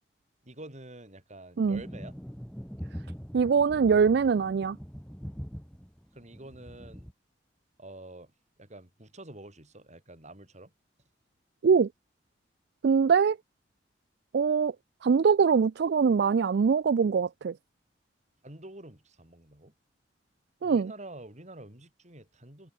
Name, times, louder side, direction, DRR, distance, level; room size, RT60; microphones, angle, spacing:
voice 1, 0.4-2.2 6.1-7.0 7.8-8.3 8.6-10.7 18.4-19.7 20.6-22.7, right 1 dB, 40° right, 6.8 m, -47 dB
sound 1, 1.6-7.1, equal, 5° left, 2.4 m, -43 dB
voice 2, 3.3-4.8 11.6-11.9 12.8-13.4 14.3-14.7 15.0-17.5 20.6-20.9, right 6 dB, 65° right, 0.4 m, -23 dB
head